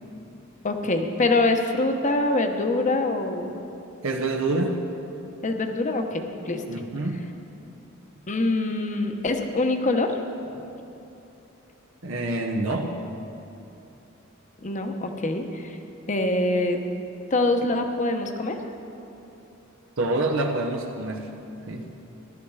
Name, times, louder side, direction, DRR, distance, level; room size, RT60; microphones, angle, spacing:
voice 1, 0.6-3.6 5.4-6.6 8.3-10.2 14.6-15.8 16.1-16.8 17.3-18.6, left 2 dB, 35° left, 5 dB, 1.0 m, -24 dB
voice 2, 4.0-4.8 6.7-7.2 12.0-12.9 20.0-21.3 21.7-21.9, right 2 dB, 75° right, 1 dB, 1.0 m, -26 dB
15.5 x 12.0 x 4.8 m, 2.9 s
head